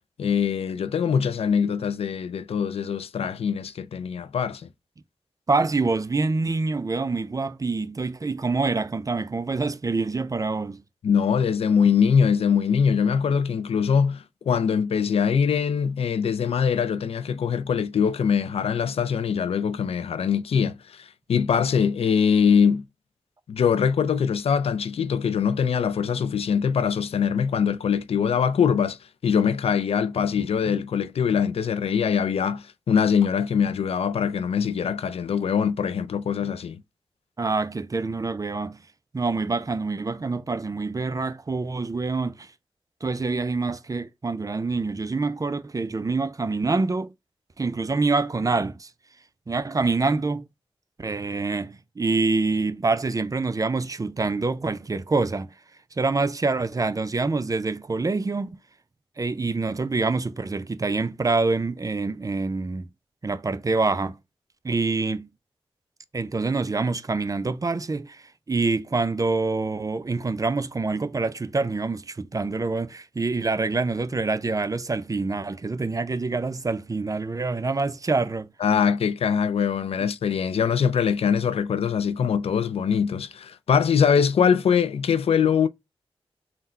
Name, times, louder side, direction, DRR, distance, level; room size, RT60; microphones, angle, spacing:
voice 1, 0.2-4.7 11.0-22.8 23.5-29.0 29.2-36.8 78.6-85.7, left 7 dB, 75° left, 0.4 m, -23 dB
voice 2, 5.5-10.8 37.4-38.8 39.1-42.5 43.0-47.1 47.6-48.9 49.5-50.5 51.0-55.5 56.0-58.6 59.2-62.9 63.2-64.2 64.6-65.3 66.1-78.5, right 3 dB, 35° right, 0.5 m, -26 dB
3.8 x 2.1 x 4.2 m
cardioid pair, 50°, 10 cm